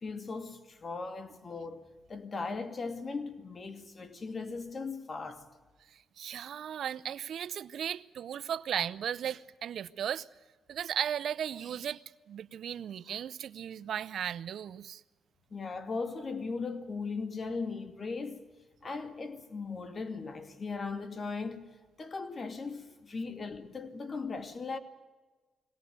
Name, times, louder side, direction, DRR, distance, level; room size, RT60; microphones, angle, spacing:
voice 1, 0.0-5.4 15.5-18.4 18.8-21.7 22.0-24.8, left 4 dB, 40° left, 2.5 m, -38 dB
voice 2, 5.9-10.3 10.7-12.0 12.3-15.0, right 9 dB, 70° right, 0.7 m, -36 dB
22.5 x 17.5 x 9.5 m
cardioid pair, 95°, 0 cm